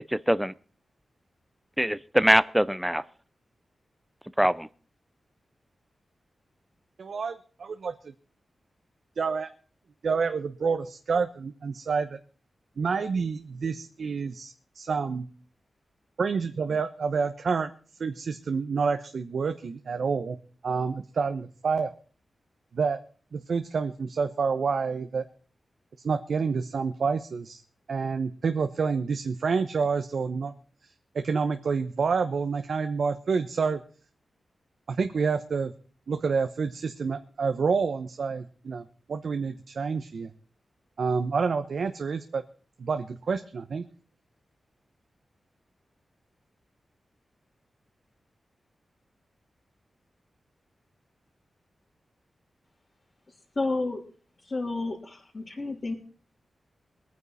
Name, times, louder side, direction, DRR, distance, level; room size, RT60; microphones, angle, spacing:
voice 1, 0.1-0.5 1.8-3.0 4.4-4.7, equal, 5° right, 0.6 m, -23 dB
voice 2, 7.0-8.1 9.2-9.5 10.0-12.2 12.8-15.3 16.2-17.7 18.0-20.4 20.6-21.9 22.7-23.0 23.3-25.2 26.0-27.6 27.9-30.5 31.1-33.8 34.9-35.7 36.1-40.3 41.0-42.4 42.8-43.8, right 5 dB, 65° right, 1.0 m, -28 dB
voice 3, 53.5-54.0 54.4-55.9, left 3 dB, 40° left, 3.3 m, -30 dB
23.0 x 9.5 x 4.2 m
wide cardioid pair, 120°, 0 cm